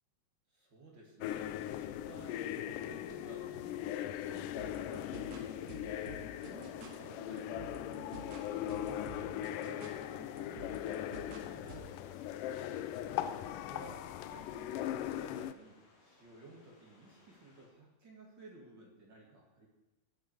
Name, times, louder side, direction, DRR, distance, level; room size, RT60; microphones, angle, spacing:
voice 1, 0.5-12.7 13.7-19.7, right 2 dB, 30° right, -2 dB, 2.8 m, -56 dB
sound 1, 1.2-15.5, left 11 dB, 85° left, 1.9 m, -39 dB
sound 2, 4.4-11.8, right 4 dB, 85° right, 3.5 m, -52 dB
sound 3, 10.3-17.7, left 2 dB, 40° left, 4.2 m, -66 dB
17.5 x 9.2 x 4.7 m, 1.1 s
omnidirectional pair, 4.4 m